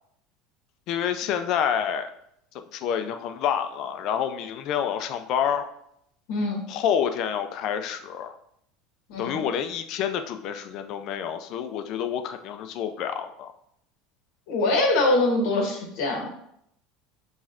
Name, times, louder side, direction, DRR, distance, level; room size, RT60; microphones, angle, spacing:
voice 1, 0.9-2.1 2.7-5.7 6.7-8.3 9.2-13.5, left 8 dB, 45° left, 9 dB, 0.3 m, -28 dB
voice 2, 6.3-6.6 9.1-9.4 14.5-16.3, left 2 dB, 65° left, 1 dB, 0.8 m, -23 dB
5.5 x 3.1 x 2.4 m, 0.73 s
cardioid pair, 165°, 0 cm